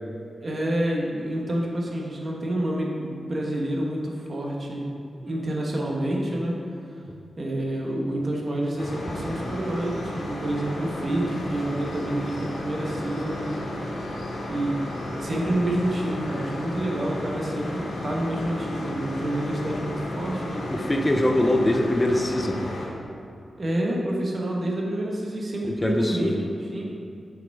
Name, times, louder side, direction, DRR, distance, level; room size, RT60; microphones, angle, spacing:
voice 1, 0.4-4.9 5.2-6.6 7.4-13.6 14.5-20.6 23.6-26.8, right 1 dB, 35° right, -2 dB, 1.2 m, -28 dB
sound 1, 8.8-22.9, left 1 dB, 85° left, 1.6 m, -33 dB
voice 2, 20.7-22.6 25.8-26.3, left 1 dB, 15° left, 3 dB, 0.6 m, -22 dB
8.2 x 5.0 x 4.8 m, 2.5 s
wide cardioid pair, 160°, 0 cm